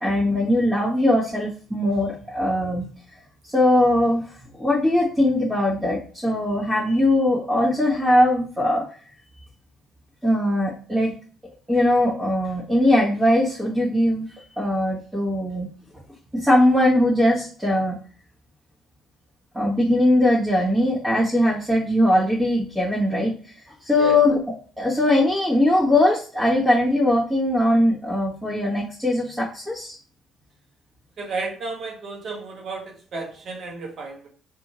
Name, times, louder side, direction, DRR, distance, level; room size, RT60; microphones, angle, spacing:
voice 1, 0.0-2.8 3.5-4.2 4.6-8.8 10.2-11.1 11.7-14.3 14.6-15.7 16.3-17.9 19.5-23.3 23.8-24.4 24.8-29.9, left 1 dB, 15° right, -8 dB, 1.2 m, -20 dB
voice 2, 31.2-34.3, right 3 dB, 55° right, 1 dB, 1.0 m, -32 dB
2.7 x 2.4 x 2.9 m, 0.41 s
hypercardioid pair, 50°, 0 cm